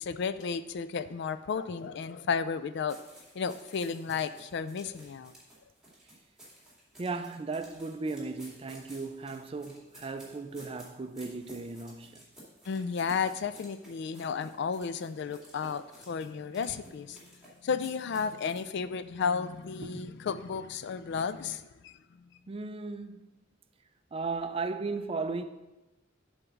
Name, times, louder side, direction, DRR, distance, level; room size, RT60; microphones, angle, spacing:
voice 1, 0.0-3.0 3.3-5.3 12.7-17.2 17.6-22.0, left 6 dB, 60° left, 0.4 m, -33 dB
sound 1, 2.9-18.7, right 1 dB, 5° right, 2.3 m, -54 dB
voice 2, 7.0-12.3 19.8-20.2 22.5-23.3 24.1-25.4, right 3 dB, 30° right, 0.4 m, -36 dB
8.0 x 3.6 x 5.9 m
head